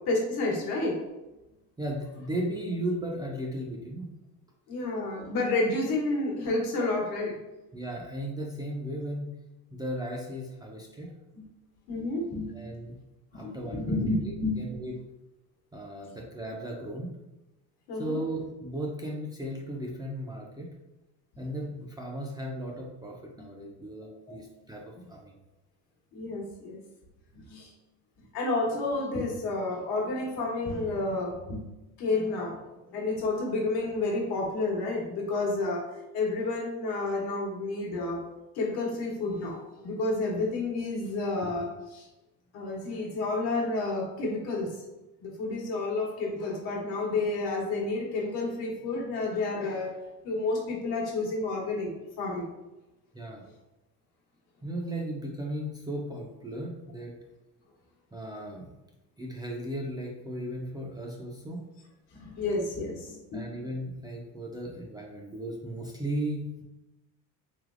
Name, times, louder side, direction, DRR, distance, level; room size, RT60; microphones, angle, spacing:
voice 1, 0.1-1.0 4.7-7.4 11.3-11.5 11.9-12.7 13.3-14.6 17.9-18.2 23.4-23.5 24.3-24.4 25.0-25.1 26.1-26.8 27.3-27.7 28.3-31.6 32.0-32.6 32.9-35.9 36.1-38.2 38.5-42.1 42.5-44.8 45.2-50.0 50.2-51.9 52.2-52.5 62.1-63.6, left 2 dB, 70° left, -1 dB, 1.1 m, -30 dB
voice 2, 1.8-4.1 7.7-9.3 9.7-11.1 12.5-13.0 13.3-14.9 15.7-17.1 18.0-20.7 21.4-25.4 53.1-53.4 54.6-57.1 58.1-58.7 59.2-61.6 63.3-66.6, right 1 dB, 10° right, -2 dB, 0.3 m, -36 dB
3.3 x 3.0 x 2.4 m, 0.99 s
supercardioid pair, 110°, 40 cm